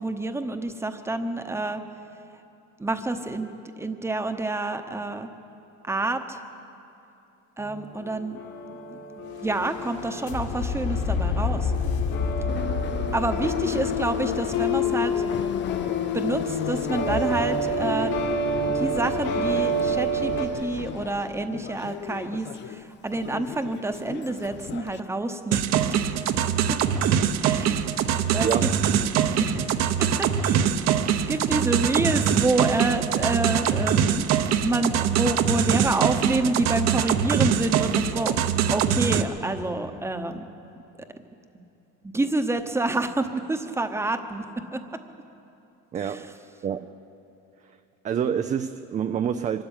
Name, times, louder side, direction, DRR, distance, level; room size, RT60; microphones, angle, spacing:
voice 1, 0.0-1.8 2.8-3.5 3.8-5.3 5.8-6.4 7.6-8.4 8.9-9.0 9.4-11.7 13.1-15.2 15.9-18.3 18.7-26.0 26.7-26.8 27.4-27.8 28.3-28.7 29.4-29.6 30.2-30.8 31.3-34.2 34.6-38.4 38.7-40.4 41.5-41.6 42.0-44.4 44.7-44.8 46.0-46.3, right 2 dB, 10° right, 0.9 m, -28 dB
sound 1, 7.6-20.5, left 2 dB, 65° left, 2.5 m, -27 dB
Subway metro underground, 12.5-25.0, left 10 dB, 35° left, 0.5 m, -36 dB
sound 2, 25.5-39.2, right 8 dB, 55° right, 1.0 m, -23 dB
voice 2, 28.4-28.8 45.9-47.0 48.0-49.6, right 8 dB, 25° right, 0.4 m, -28 dB
24.5 x 13.0 x 8.9 m
cardioid pair, 145°, 33 cm